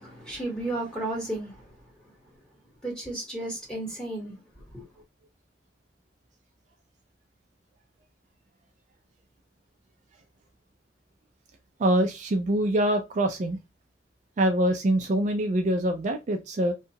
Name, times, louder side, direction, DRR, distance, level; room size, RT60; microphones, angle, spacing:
voice 1, 0.0-1.8 2.8-4.8, right 2 dB, 5° left, 1.6 m, -34 dB
voice 2, 11.8-13.6 14.4-16.7, right 1 dB, 45° right, 0.4 m, -24 dB
2.7 x 2.3 x 2.7 m
head